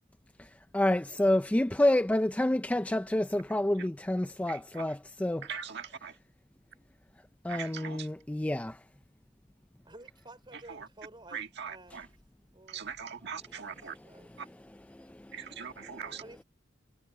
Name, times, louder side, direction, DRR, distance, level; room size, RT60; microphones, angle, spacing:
voice 1, 0.7-5.5 7.4-8.7 15.1-15.2, left 1 dB, 5° left, 0.4 m, -28 dB
voice 2, 4.5-5.0 5.4-6.2 7.5-8.1 10.7-10.9 11.3-12.1 12.7-14.0 14.4-14.5 15.3-16.2, right 6 dB, 60° right, 1.8 m, -41 dB
voice 3, 9.8-12.1 12.5-12.9 13.4-13.6 14.0-14.3 16.2-16.4, right 2 dB, 25° right, 3.7 m, -52 dB
head